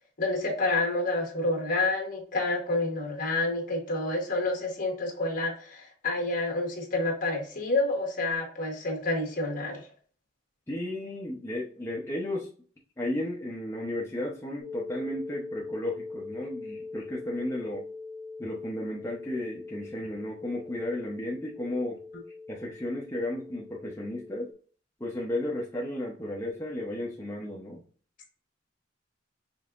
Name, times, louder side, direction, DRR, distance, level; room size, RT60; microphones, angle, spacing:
voice 1, 0.2-9.9, left 2 dB, 50° left, 1 dB, 1.4 m, -29 dB
voice 2, 10.7-12.5 13.0-17.8 18.4-22.0 22.5-24.5 25.0-27.8, left 1 dB, 15° left, -4 dB, 0.7 m, -34 dB
sound 1, 14.6-24.5, left 3 dB, 5° right, 1.4 m, -42 dB
5.4 x 3.4 x 2.5 m, 0.43 s
head